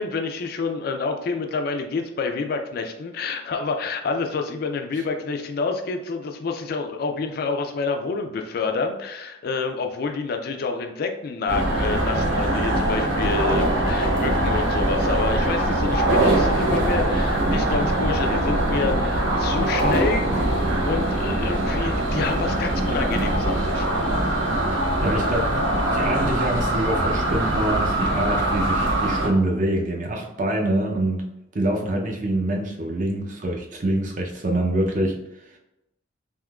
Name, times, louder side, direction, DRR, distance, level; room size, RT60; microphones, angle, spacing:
voice 1, 0.0-23.9, left 4 dB, 55° left, 5 dB, 0.3 m, -28 dB
sound 1, 11.5-29.3, right 1 dB, 85° right, 0.6 m, -22 dB
voice 2, 25.0-25.6 25.9-31.2 31.5-35.2 35.5-35.6, right 1 dB, 40° right, 2 dB, 0.5 m, -25 dB
3.6 x 2.7 x 2.2 m, 0.90 s
head